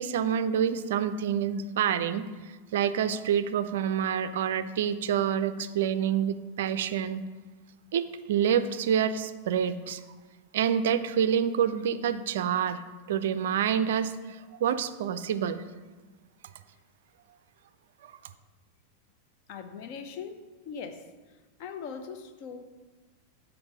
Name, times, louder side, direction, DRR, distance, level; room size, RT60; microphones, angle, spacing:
voice 1, 0.0-2.2 2.7-7.2 7.9-10.0 10.5-12.8 13.1-15.6 18.0-18.1, right 8 dB, 55° right, 12 dB, 0.3 m, -27 dB
voice 2, 19.5-21.1 21.6-22.6, left 6 dB, 45° left, 8 dB, 0.6 m, -40 dB
6.9 x 4.6 x 5.0 m, 1.3 s
figure-of-eight pair, 90°, 0 cm